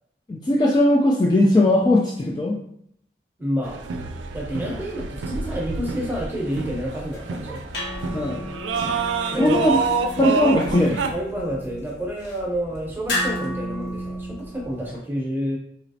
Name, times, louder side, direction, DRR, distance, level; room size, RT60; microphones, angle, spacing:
voice 1, 0.3-2.6 8.1-8.4 9.4-9.8 10.2-11.0, left 1 dB, 20° left, -2 dB, 0.3 m, -19 dB
voice 2, 3.4-3.8 4.3-7.6 9.3-9.8 11.1-15.6, equal, 10° right, -1 dB, 0.8 m, -29 dB
sound 1, 3.6-11.1, right 4 dB, 85° right, 0.4 m, -28 dB
sound 2, 7.0-15.0, equal, 70° left, 1.0 m, -33 dB
4.0 x 3.0 x 2.7 m, 0.68 s
head